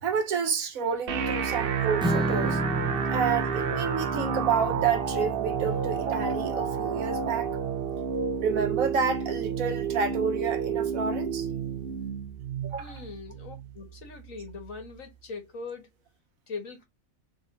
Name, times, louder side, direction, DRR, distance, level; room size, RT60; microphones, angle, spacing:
voice 1, 0.0-2.6 3.1-7.5 8.4-11.5 12.6-12.9, right 6 dB, 80° right, 1.3 m, -29 dB
sound 1, 1.1-15.0, right 6 dB, 55° right, 0.8 m, -30 dB
Strum, 2.0-8.3, right 2 dB, 5° right, 0.4 m, -34 dB
voice 2, 12.8-15.9 16.5-16.8, left 4 dB, 75° left, 1.8 m, -41 dB
3.9 x 2.8 x 3.9 m
omnidirectional pair, 1.4 m